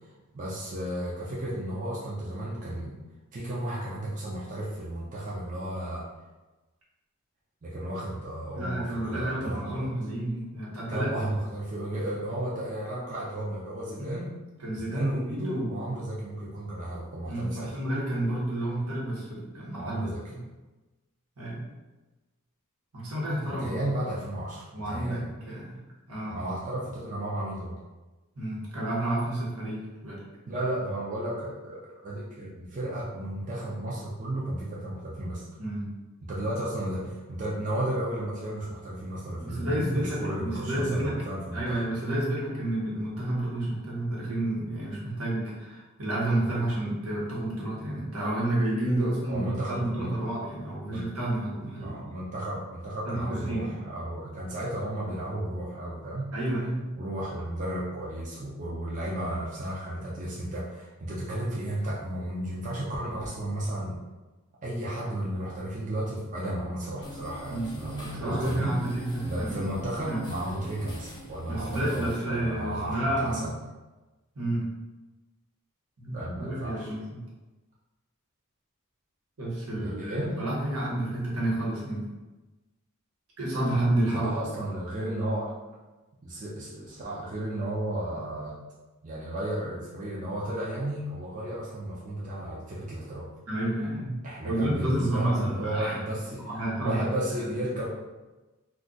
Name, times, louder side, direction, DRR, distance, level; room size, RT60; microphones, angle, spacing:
voice 1, 0.3-3.0 3.3-6.0 7.6-9.9 10.9-14.3 14.7-17.7 19.7-20.2 23.4-25.3 26.3-27.8 30.5-35.4 36.3-41.8 49.3-50.1 50.5-51.1 51.8-56.3 57.0-64.0 64.6-68.8 69.2-73.5 76.1-76.9 79.8-80.3 84.1-85.5 86.2-88.5 89.0-93.3 94.2-96.5 96.8-97.9, right 1 dB, 35° right, -6 dB, 0.5 m, -33 dB
voice 2, 8.5-11.1 14.0-14.1 14.6-16.0 17.3-20.4 21.4-21.6 22.9-24.1 24.7-25.8 26.1-26.4 28.4-30.2 35.6-35.9 39.4-41.2 41.5-51.9 53.1-53.8 56.3-56.9 67.5-67.7 68.0-69.6 70.1-70.2 71.4-73.5 74.3-74.6 76.0-77.0 79.4-82.0 83.4-84.3 93.5-94.2 94.4-96.0 96.4-97.0 97.5-97.7, right 1 dB, 80° right, -5 dB, 1.1 m, -30 dB
sound 1, 67.0-72.2, equal, 20° left, 0.5 m, -43 dB
2.4 x 2.4 x 3.8 m, 1.1 s
head